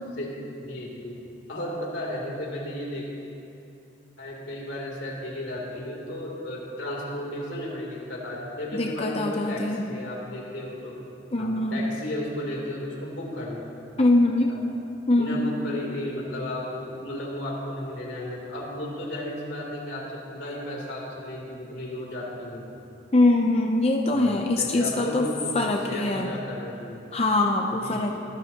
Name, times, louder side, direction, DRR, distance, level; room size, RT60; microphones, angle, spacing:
voice 1, 0.2-1.2 1.5-3.1 4.2-10.9 11.4-13.6 14.2-14.6 15.2-22.8 24.1-27.0 27.7-28.2, left 1 dB, 85° left, -3 dB, 3.2 m, -34 dB
voice 2, 8.7-9.9 11.3-11.9 14.0-14.5 15.1-15.4 23.1-25.3 25.5-26.3 27.1-28.2, left 2 dB, 30° left, 2 dB, 0.6 m, -23 dB
23.5 x 14.0 x 2.9 m, 2.8 s
head